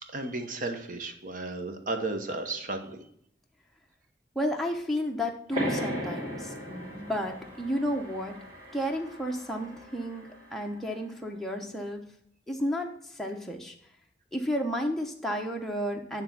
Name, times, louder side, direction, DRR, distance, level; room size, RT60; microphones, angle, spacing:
voice 1, 0.0-3.0, right 2 dB, 50° right, 6 dB, 0.9 m, -34 dB
voice 2, 4.3-8.3 8.7-12.0 12.5-13.7 14.3-16.2, equal, ahead, 0 dB, 0.7 m, -32 dB
sound 1, 5.5-10.8, equal, 30° right, 2.3 m, -37 dB
9.2 x 3.4 x 5.8 m, 0.66 s
head